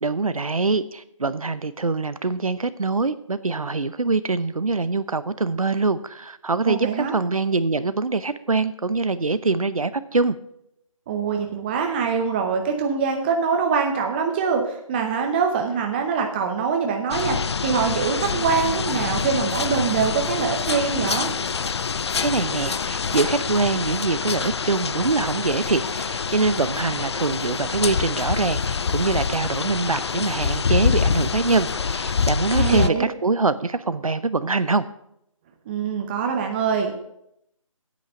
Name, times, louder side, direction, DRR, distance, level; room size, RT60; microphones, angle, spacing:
voice 1, 0.0-10.4 22.2-34.8, right 3 dB, 85° right, 14 dB, 0.8 m, -24 dB
voice 2, 6.7-7.1 11.1-17.4 17.6-21.3 32.5-33.0 35.7-36.9, right 6 dB, 20° right, 3 dB, 0.8 m, -24 dB
sound 1, 17.1-32.9, left 5 dB, 50° left, 0.5 m, -26 dB
9.3 x 8.7 x 6.4 m, 0.78 s
figure-of-eight pair, 155°, 17 cm